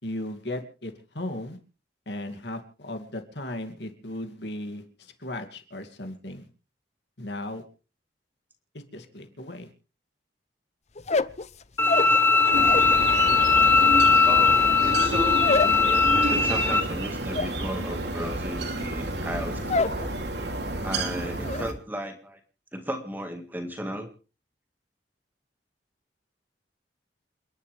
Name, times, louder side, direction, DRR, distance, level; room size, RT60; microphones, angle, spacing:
voice 1, 0.0-1.6 2.1-6.5 7.2-7.6 8.7-9.7, left 1 dB, 70° left, 5 dB, 2.7 m, -36 dB
sound 1, 10.9-13.0 13.3-20.1 20.4-20.9 21.1-21.7, left 3 dB, 40° left, 0.7 m, -30 dB
Bowed string instrument, 11.8-16.8, left 4 dB, 15° left, 1.5 m, -20 dB
sound 2, 12.5-21.7, right 2 dB, 70° right, 3.1 m, -31 dB
voice 2, 14.3-19.7 20.8-22.4 22.7-24.1, equal, 10° right, 5 dB, 1.9 m, -35 dB
28.5 x 11.5 x 3.5 m, 0.36 s
head